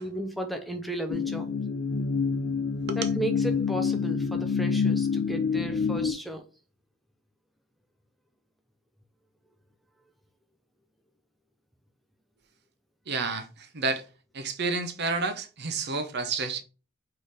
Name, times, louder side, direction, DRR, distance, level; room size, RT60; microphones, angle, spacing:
voice 1, 0.0-1.5 3.0-6.4, right 1 dB, ahead, 0.5 m, -34 dB
sound 1, 1.1-6.1, left 5 dB, 70° left, 0.6 m, -27 dB
voice 2, 13.1-14.0 14.3-16.6, right 4 dB, 55° right, 0.8 m, -30 dB
3.9 x 3.3 x 4.0 m
head